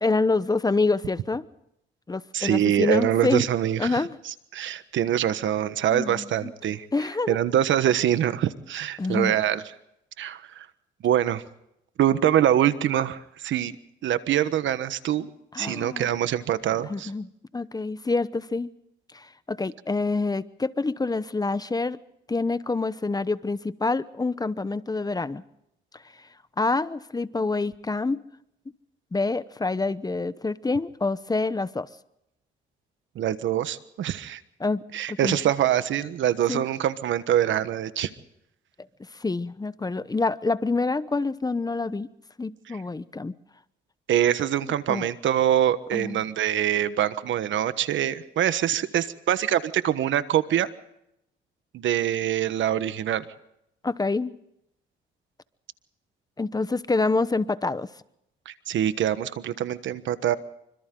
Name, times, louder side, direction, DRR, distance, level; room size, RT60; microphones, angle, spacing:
voice 1, 0.0-1.5 2.1-3.5 3.8-4.2 5.9-6.5 6.9-7.4 9.0-9.4 15.5-16.1 16.9-17.3 17.5-18.7 19.1-22.0 22.3-25.4 25.9-26.3 26.6-28.2 29.1-31.9 34.6-35.4 36.5-36.6 39.1-42.1 42.4-43.3 44.9-45.1 45.9-46.2 53.8-54.4 56.4-57.9, left 3 dB, 20° left, 15 dB, 0.9 m, -27 dB
voice 2, 2.3-6.9 7.3-9.6 10.2-10.7 11.0-11.4 12.0-13.7 14.0-15.3 15.6-17.1 33.1-34.4 34.9-38.1 42.7-42.8 44.1-50.7 51.7-53.2 58.4-60.4, right 11 dB, 70° right, 13 dB, 1.3 m, -24 dB
26.5 x 25.0 x 3.9 m, 0.80 s
cardioid pair, 90°, 20 cm